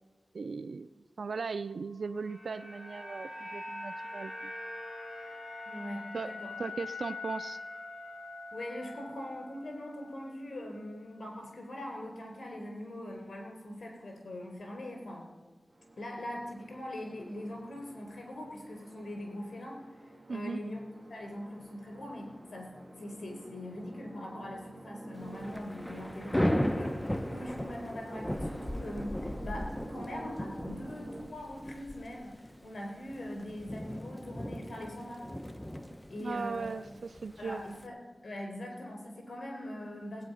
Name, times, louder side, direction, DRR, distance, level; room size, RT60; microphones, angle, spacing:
voice 1, 0.3-0.9 1.2-4.5 6.1-6.3 6.6-7.6 20.3-20.6 36.2-37.6, right 4 dB, 85° right, 14 dB, 0.3 m, -38 dB
sound 1, 2.0-10.3 10.6-10.7, left 2 dB, 25° left, 4.6 m, -43 dB
voice 2, 5.7-6.6 8.5-15.3 16.0-20.8 21.1-22.7 22.9-35.3 36.1-36.8 37.4-40.2, left 1 dB, 80° left, 2 dB, 4.1 m, -42 dB
sound 2, 15.7-31.2, right 1 dB, 45° right, 2.5 m, -49 dB
Thunder / Rain, 25.2-37.9, equal, 10° left, 0.8 m, -37 dB
18.0 x 9.0 x 5.6 m, 1.4 s
wide cardioid pair, 55°, 0 cm